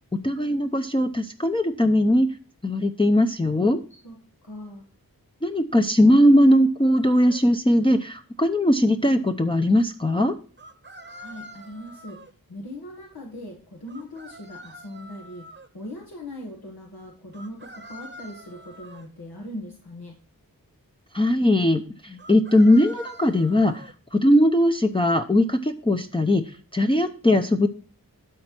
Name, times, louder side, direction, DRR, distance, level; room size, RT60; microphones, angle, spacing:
voice 1, 0.1-2.3 2.6-3.8 5.4-10.3 21.1-23.8 24.1-27.7, left 1 dB, 15° left, 4 dB, 0.6 m, -20 dB
voice 2, 3.9-4.8 11.1-20.2, left 1 dB, 85° left, -1 dB, 1.8 m, -40 dB
sound 1, 6.8-7.4 10.6-12.3 13.9-15.7 17.3-19.1 22.2-23.9, equal, 30° right, 0.9 m, -45 dB
12.5 x 4.3 x 6.0 m, 0.40 s
wide cardioid pair, 55°, 36 cm